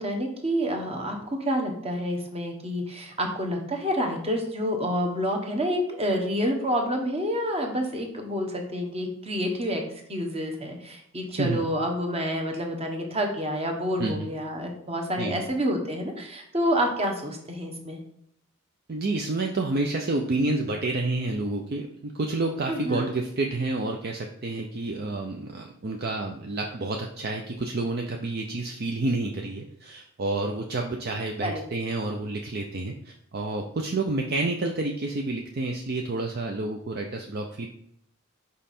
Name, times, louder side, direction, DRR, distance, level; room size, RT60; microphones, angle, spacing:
voice 1, 0.0-9.8 10.1-18.0 22.7-23.1 31.4-31.6, equal, 30° right, 2 dB, 1.1 m, -28 dB
voice 2, 18.9-37.7, right 2 dB, 50° right, 2 dB, 0.5 m, -29 dB
5.5 x 5.0 x 4.3 m, 0.71 s
head